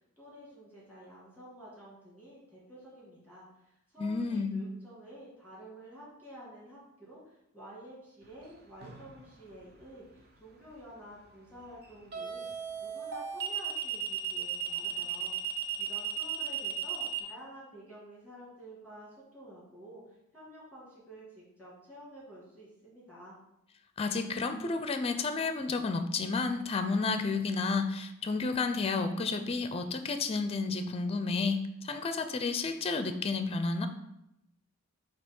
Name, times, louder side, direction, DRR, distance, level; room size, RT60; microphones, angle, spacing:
voice 1, 0.0-12.5 12.8-23.4, right 1 dB, 5° right, -7 dB, 2.2 m, -51 dB
voice 2, 4.0-4.6 24.0-33.9, left 4 dB, 30° left, 8 dB, 0.5 m, -31 dB
sound 1, 8.8-9.2 12.1-17.2, right 10 dB, 50° right, 1.0 m, -34 dB
7.7 x 2.9 x 5.3 m, 0.84 s
head